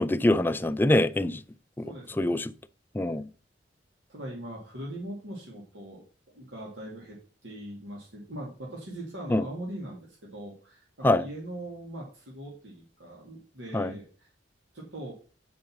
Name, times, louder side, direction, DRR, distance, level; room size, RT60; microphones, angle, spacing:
voice 1, 0.0-1.4 1.8-1.9 2.2-2.5 2.9-3.3 9.3-9.4 11.0-11.2 13.7-13.9, left 1 dB, 10° left, 0.4 m, -24 dB
voice 2, 1.8-2.4 4.1-6.0 6.3-14.3 14.7-15.1, right 1 dB, 85° right, 2.2 m, -41 dB
7.9 x 5.2 x 5.8 m
head